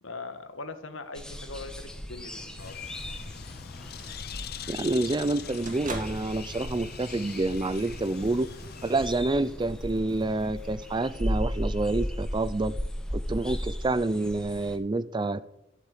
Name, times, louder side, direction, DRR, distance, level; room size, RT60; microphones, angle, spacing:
voice 1, 0.0-2.8, left 3 dB, 70° left, 9 dB, 1.6 m, -41 dB
sound 1, 1.1-14.8, equal, 5° left, 1.3 m, -36 dB
Bird, 2.6-9.1, left 7 dB, 50° left, 0.6 m, -42 dB
sound 2, 3.8-11.1, right 2 dB, 40° right, 2.4 m, -46 dB
voice 2, 4.7-8.5 8.8-12.7 13.1-15.4, right 2 dB, 20° right, 17 dB, 0.4 m, -28 dB
12.5 x 8.0 x 8.3 m, 0.88 s
head